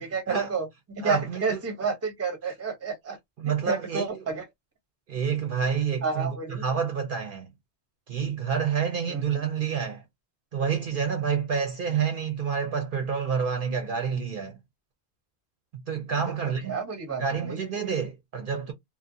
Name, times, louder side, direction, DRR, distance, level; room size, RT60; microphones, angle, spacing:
voice 1, 0.0-3.2 3.4-4.4 6.0-6.6 9.1-9.5 16.1-16.2 16.7-17.6, right 4 dB, 15° right, 0.6 m, -31 dB
voice 2, 1.0-1.6 2.4-2.5 3.4-4.2 5.1-7.5 8.1-10.0 10.5-14.6 15.9-16.8 17.2-18.7, right 6 dB, 60° right, 0.7 m, -28 dB
2.6 x 2.0 x 2.6 m
omnidirectional pair, 1.1 m